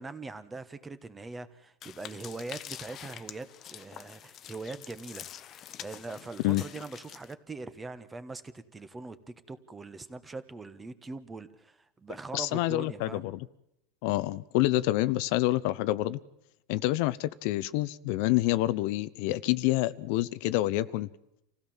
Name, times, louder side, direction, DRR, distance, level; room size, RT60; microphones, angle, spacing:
voice 1, 0.0-13.3, right 3 dB, 15° right, 1.3 m, -42 dB
sound 1, 1.8-7.3, left 10 dB, 35° left, 1.0 m, -46 dB
voice 2, 12.3-13.4 14.0-16.2 16.7-21.1, left 17 dB, 65° left, 0.8 m, -27 dB
27.0 x 16.0 x 7.3 m
supercardioid pair, 140°, 0 cm